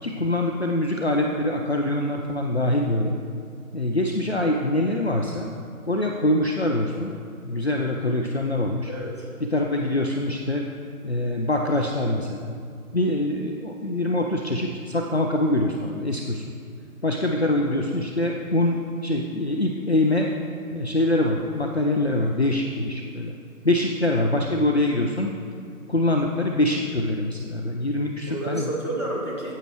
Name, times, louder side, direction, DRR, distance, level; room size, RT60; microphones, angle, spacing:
voice 1, 0.0-3.2 3.7-5.5 5.9-7.1 7.4-8.9 9.4-10.7 11.0-12.5 12.9-16.5 17.0-20.3 20.7-23.3 23.6-25.3 25.9-28.7, left 1 dB, 45° left, 1 dB, 0.6 m, -24 dB
voice 2, 8.9-9.3 10.0-10.2 28.3-29.5, right 2 dB, 20° left, -6 dB, 1.2 m, -31 dB
15.0 x 8.6 x 3.1 m, 2.3 s
figure-of-eight pair, 165°, 45 cm